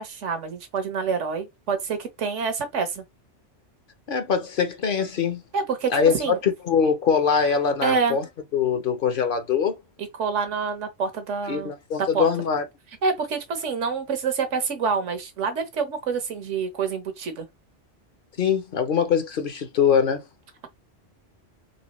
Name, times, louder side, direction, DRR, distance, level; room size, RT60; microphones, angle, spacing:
voice 1, 0.0-3.0 5.5-5.9 6.2-6.4 7.8-8.2 10.2-11.7 12.1-12.3 13.0-17.5, right 5 dB, 85° right, 1.3 m, -27 dB
voice 2, 4.1-5.4 5.9-8.2 8.5-9.8 11.5-12.6 18.4-20.2, left 6 dB, 55° left, 0.8 m, -23 dB
4.2 x 3.2 x 3.0 m
omnidirectional pair, 1.2 m